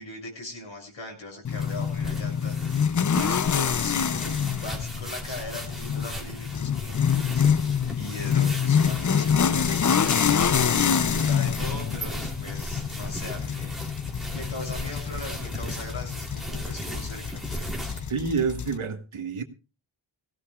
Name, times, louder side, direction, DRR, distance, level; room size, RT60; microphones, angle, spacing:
voice 1, 0.0-7.6 8.0-14.0 14.3-18.0, left 2 dB, 70° left, 7.3 m, -40 dB
sound 1, 1.4-18.8, left 7 dB, 40° left, 0.6 m, -26 dB
sound 2, 1.6-18.1, right 1 dB, ahead, 3.1 m, -37 dB
voice 2, 18.1-19.4, right 5 dB, 80° right, 1.6 m, -28 dB
18.5 x 16.5 x 2.4 m
wide cardioid pair, 70°, 48 cm